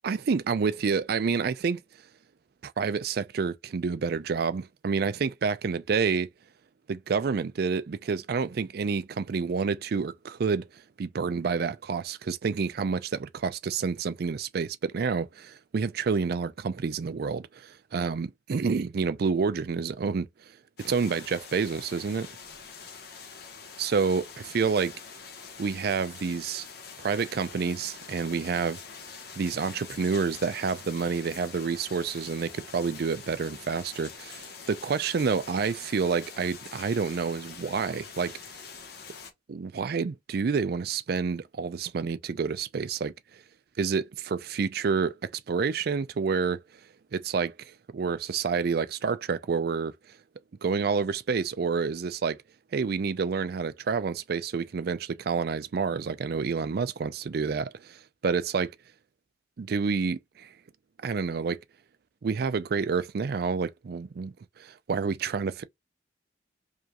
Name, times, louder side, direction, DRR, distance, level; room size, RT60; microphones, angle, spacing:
voice 1, 0.0-1.8 2.6-6.3 6.9-10.7 11.0-20.3 20.8-22.3 23.8-24.9 25.6-26.7 27.0-28.8 29.4-38.4 39.5-43.1 43.8-46.6 47.1-49.9 50.6-52.4 52.7-58.7 59.6-60.5 61.0-61.6 62.2-64.3 64.6-65.6, right 5 dB, 55° right, 0.4 m, -28 dB
sound 1, 20.8-39.3, left 5 dB, 55° left, 0.9 m, -45 dB
4.9 x 2.4 x 2.9 m
head